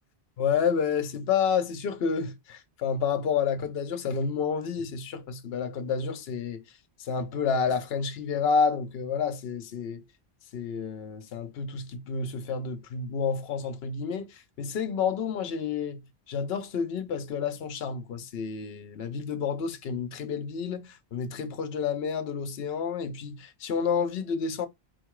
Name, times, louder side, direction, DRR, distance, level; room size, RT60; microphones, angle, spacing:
voice 1, 0.4-6.6 7.0-10.0 10.5-24.7, left 6 dB, 70° left, 0.9 m, -29 dB
4.3 x 2.3 x 4.6 m
omnidirectional pair, 1.1 m